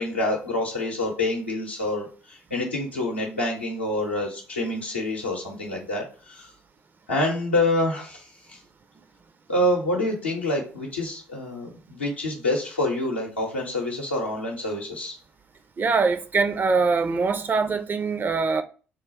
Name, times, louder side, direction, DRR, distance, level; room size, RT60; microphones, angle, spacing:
voice 1, 0.0-6.5 7.1-8.2 9.5-15.2, left 1 dB, 85° left, 0.7 m, -27 dB
voice 2, 15.8-18.6, right 4 dB, 35° right, 0.4 m, -23 dB
3.7 x 2.2 x 3.2 m
figure-of-eight pair, 45°, 6 cm